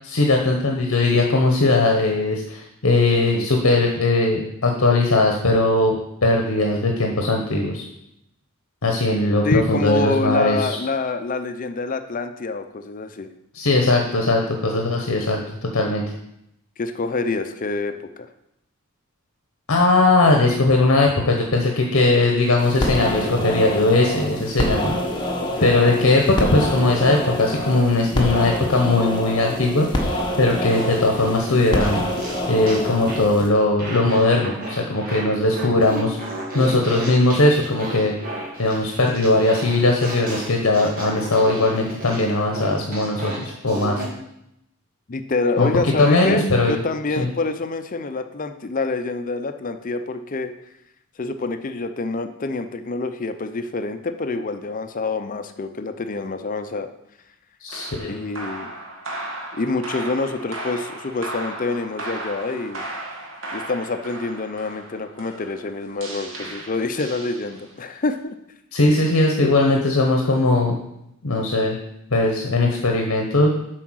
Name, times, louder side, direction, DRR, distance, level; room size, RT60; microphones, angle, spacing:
voice 1, 0.0-7.8 8.8-10.8 13.5-16.0 19.7-25.0 25.6-32.0 32.5-38.1 38.6-44.0 45.6-46.8 47.2-47.3 57.6-58.1 68.7-70.8 71.2-71.8 72.1-73.5, left 2 dB, 60° left, 2 dB, 0.9 m, -19 dB
voice 2, 9.4-13.3 16.8-18.3 25.4-25.7 45.1-50.5 51.2-56.9 58.0-58.7 59.5-62.8 63.5-68.3 69.4-69.5, left 3 dB, 40° left, 8 dB, 0.5 m, -26 dB
sound 1, 22.6-33.5, equal, 20° left, 1.2 m, -26 dB
Fart, 30.7-33.3 33.8-44.1, right 1 dB, 40° right, 2.0 m, -34 dB
sound 2, 57.7-67.9, right 1 dB, 65° right, 1.7 m, -35 dB
7.7 x 4.7 x 6.2 m, 0.81 s
head